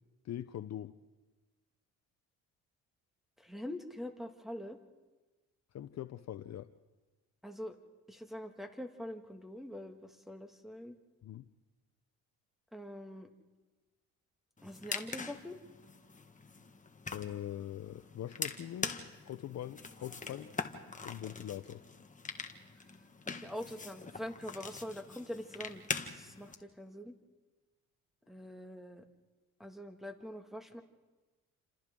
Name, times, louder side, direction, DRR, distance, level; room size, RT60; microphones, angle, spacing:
voice 1, 0.2-0.9 5.7-6.7 11.2-11.5 17.1-18.9 19.2-20.5 21.0-21.8, left 11 dB, 50° left, 12 dB, 0.7 m, -42 dB
voice 2, 3.4-4.8 7.4-7.8 8.1-10.9 12.7-13.3 14.6-15.6 23.3-27.1 28.3-29.0 29.6-30.8, left 1 dB, ahead, 5 dB, 2.0 m, -44 dB
sound 1, 14.6-26.5, left 4 dB, 20° left, 1.7 m, -43 dB
29.5 x 27.0 x 3.8 m, 1.2 s
cardioid pair, 95°, 35 cm